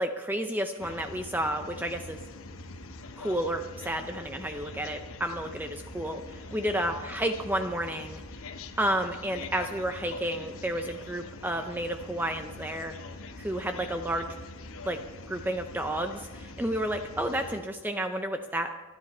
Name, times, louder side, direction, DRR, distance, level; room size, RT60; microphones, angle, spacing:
voice 1, 0.0-2.2 3.2-8.2 8.8-12.9 13.4-14.3 14.8-15.0 15.3-18.7, right 1 dB, 10° right, 6 dB, 0.5 m, -31 dB
sound 1, 0.8-17.6, left 2 dB, 70° left, 1.1 m, -44 dB
26.5 x 9.9 x 4.3 m, 1.3 s
head